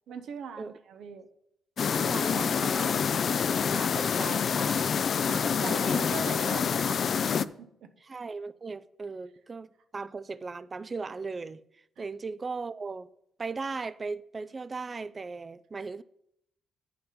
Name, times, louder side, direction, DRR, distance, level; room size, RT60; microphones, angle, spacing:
voice 1, 0.1-1.3 5.3-7.9 12.0-12.1, right 6 dB, 75° right, 0.9 m, -41 dB
sound 1, 1.8-7.4, left 7 dB, 50° left, 0.4 m, -27 dB
voice 2, 1.9-3.4 3.7-4.9 5.7-6.0 8.1-11.6 12.0-13.1 13.4-16.0, right 4 dB, 30° right, 0.4 m, -38 dB
8.8 x 7.1 x 5.2 m
cardioid pair, 90°, 0 cm